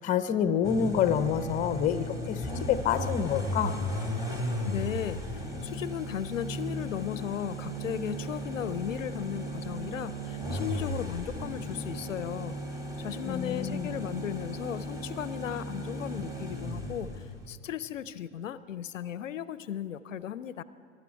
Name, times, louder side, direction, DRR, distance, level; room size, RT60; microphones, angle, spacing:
voice 1, 0.0-3.8 13.3-13.9, left 8 dB, 20° left, 12 dB, 0.6 m, -28 dB
sound 1, 0.6-17.5, equal, 10° right, 1.7 m, -36 dB
voice 2, 4.6-5.2 5.6-12.6 13.0-17.1 17.5-20.6, left 10 dB, 70° left, 16 dB, 0.5 m, -36 dB
21.0 x 12.0 x 4.6 m, 2.5 s
figure-of-eight pair, 90°, 39 cm